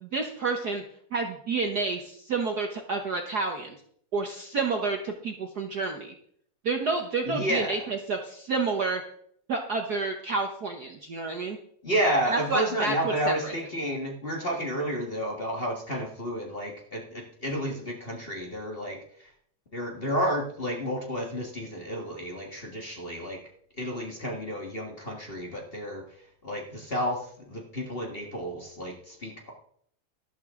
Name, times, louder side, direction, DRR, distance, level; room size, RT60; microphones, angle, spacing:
voice 1, 0.0-0.8 1.1-3.8 4.1-6.1 6.6-9.0 9.5-11.6 12.3-13.5, right 4 dB, 90° right, 3 dB, 0.8 m, -29 dB
voice 2, 7.2-7.8 11.8-19.3 19.7-23.4 23.8-26.0 26.4-29.5, equal, 25° left, 1 dB, 1.4 m, -31 dB
13.0 x 12.0 x 3.7 m, 0.65 s
omnidirectional pair, 3.3 m